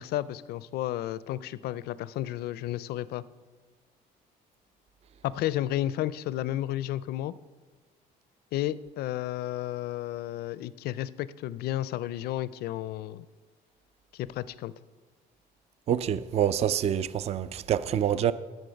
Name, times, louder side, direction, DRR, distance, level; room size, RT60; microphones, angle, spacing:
voice 1, 0.0-3.2 5.2-7.3 8.5-13.3 14.1-14.7, left 13 dB, 70° left, 0.4 m, -32 dB
voice 2, 15.9-18.3, right 9 dB, 40° right, 0.4 m, -26 dB
14.5 x 6.3 x 5.2 m
cardioid pair, 110°, 17 cm